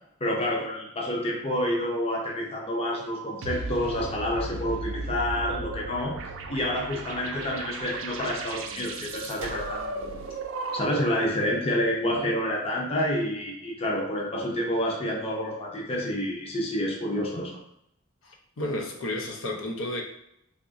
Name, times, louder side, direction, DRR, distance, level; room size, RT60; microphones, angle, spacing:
voice 1, 0.2-6.2 6.5-10.2 10.7-17.6, left 1 dB, 30° left, -1 dB, 0.6 m, -28 dB
sound 1, 3.4-11.2, right 3 dB, 75° right, 0.4 m, -35 dB
voice 2, 18.2-20.0, left 1 dB, 85° left, 0 dB, 0.7 m, -32 dB
3.6 x 2.9 x 2.6 m, 0.75 s
head